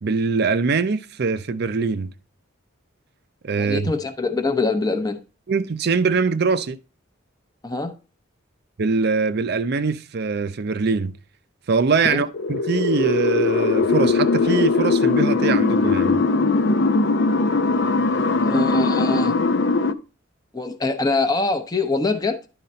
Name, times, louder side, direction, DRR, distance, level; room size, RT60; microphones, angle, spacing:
voice 1, 0.0-2.1 3.4-3.9 5.5-6.8 8.8-11.2 11.7-16.2, right 4 dB, 55° right, 0.5 m, -22 dB
voice 2, 3.6-5.2 7.6-7.9 12.0-12.2 18.4-19.3 20.5-22.5, left 3 dB, 20° left, 0.7 m, -23 dB
sound 1, 12.3-19.9, left 3 dB, 60° left, 0.6 m, -20 dB
11.0 x 4.0 x 4.2 m
head